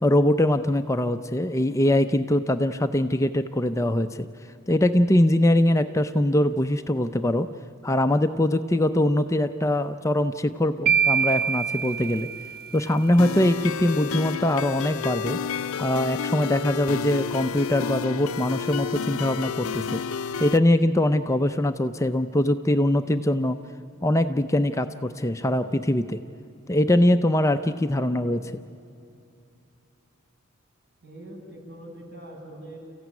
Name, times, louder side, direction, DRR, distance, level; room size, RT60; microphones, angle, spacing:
voice 1, 0.0-4.3 4.7-7.5 7.8-12.3 12.7-15.4 15.8-20.0 20.4-23.6 24.0-26.2 26.7-28.6, left 1 dB, 15° left, 9 dB, 0.5 m, -22 dB
sound 1, 10.9-13.0, right 7 dB, 45° right, 0.5 m, -25 dB
sound 2, 13.2-20.6, left 6 dB, 80° left, 0.5 m, -30 dB
voice 2, 31.0-32.8, right 1 dB, 60° right, -2 dB, 7.0 m, -42 dB
28.5 x 14.5 x 9.5 m, 2.7 s
head